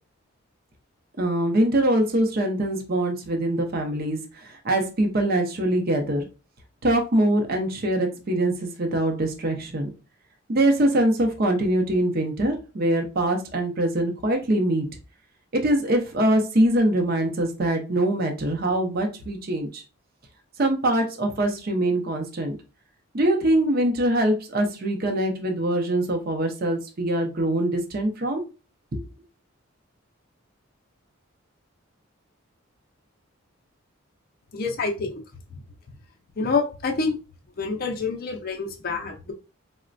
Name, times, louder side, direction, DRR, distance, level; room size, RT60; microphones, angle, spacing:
voice 1, 1.2-6.3 6.8-9.9 10.5-14.9 15.5-19.8 20.6-22.6 23.1-28.4 28.9-29.0, right 1 dB, 45° right, 0.6 m, -23 dB
voice 2, 34.5-35.2 36.4-37.2 37.6-39.3, left 4 dB, 45° left, 0.4 m, -27 dB
4.0 x 2.1 x 2.4 m
head